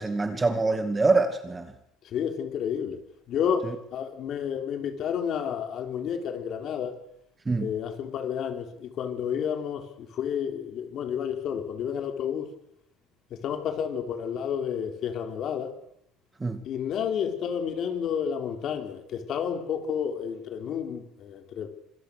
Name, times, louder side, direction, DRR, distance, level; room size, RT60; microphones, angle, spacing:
voice 1, 0.0-1.7 3.6-3.8 7.5-7.7 16.4-16.6, right 3 dB, 15° right, 2.0 m, -25 dB
voice 2, 2.1-3.0 3.3-7.0 7.6-12.5 13.3-15.7 16.6-21.7, left 8 dB, 50° left, 3.9 m, -30 dB
25.5 x 22.5 x 6.7 m
cardioid pair, 135°, 0 cm